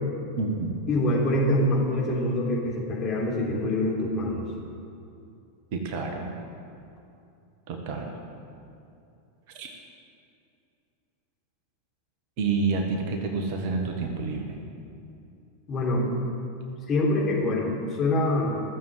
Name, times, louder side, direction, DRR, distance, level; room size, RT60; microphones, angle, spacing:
voice 1, 0.4-0.8 5.7-6.3 7.7-8.1 9.5-9.7 12.4-14.6, right 4 dB, 45° right, 3 dB, 1.5 m, -29 dB
voice 2, 0.9-4.4 15.7-16.1 16.9-18.6, left 1 dB, 25° left, -4 dB, 3.6 m, -25 dB
15.0 x 7.3 x 7.9 m, 2.6 s
figure-of-eight pair, 90°, 0 cm